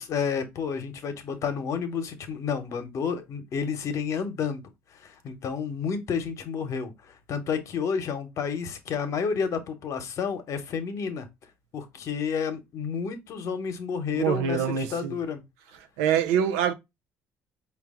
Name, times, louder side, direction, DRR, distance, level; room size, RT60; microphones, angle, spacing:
voice 1, 0.0-4.6 4.9-11.3 11.7-15.4, left 6 dB, 60° left, 0.9 m, -30 dB
voice 2, 14.1-15.2 16.0-16.7, right 8 dB, 90° right, 0.5 m, -25 dB
4.5 x 2.3 x 3.5 m
supercardioid pair, 75°, 6 cm